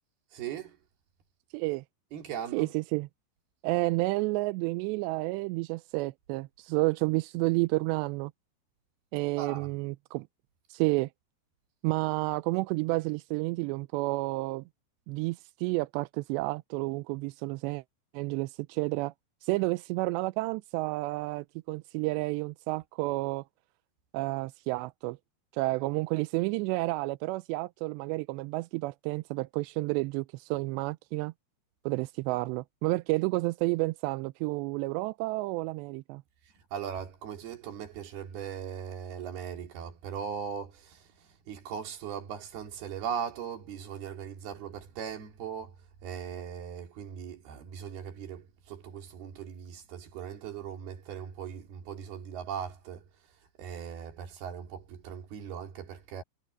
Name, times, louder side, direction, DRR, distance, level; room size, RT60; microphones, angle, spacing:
voice 1, 0.3-0.8 2.1-2.7 9.4-9.7 36.7-41.1 41.5-45.7 46.0-53.0 53.6-56.2, right 8 dB, 60° right, 4.5 m, -39 dB
voice 2, 1.5-1.8 2.5-3.1 3.6-8.3 9.1-10.3 10.7-11.1 11.8-14.6 15.1-17.8 18.1-19.1 19.4-23.4 24.1-25.2 25.5-31.3 31.9-36.2, right 23 dB, 85° right, 2.6 m, -30 dB
omnidirectional pair, 5.3 m